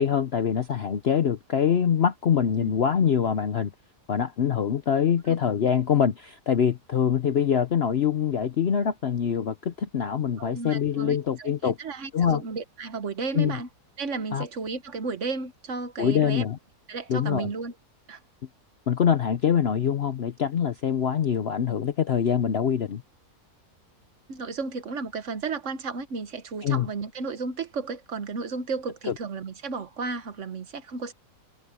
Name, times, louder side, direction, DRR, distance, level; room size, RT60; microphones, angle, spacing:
voice 1, 0.0-3.7 4.1-11.8 12.1-12.4 13.3-13.6 14.3-14.4 16.0-16.6 17.1-17.5 18.9-23.0 26.6-26.9 29.1-29.2, left 8 dB, 50° left, 0.9 m, -24 dB
voice 2, 10.4-13.7 14.0-16.4 16.9-17.7 18.1-18.2 24.3-31.1, right 4 dB, 55° right, 1.5 m, -33 dB
omnidirectional pair, 1.6 m